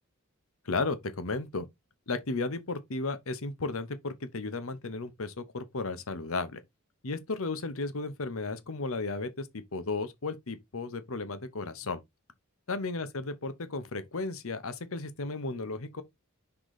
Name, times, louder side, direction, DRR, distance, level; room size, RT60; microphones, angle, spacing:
voice 1, 0.6-1.7 2.1-6.6 7.0-12.0 12.7-16.0, left 3 dB, 70° left, 0.9 m, -34 dB
6.0 x 3.8 x 4.9 m
head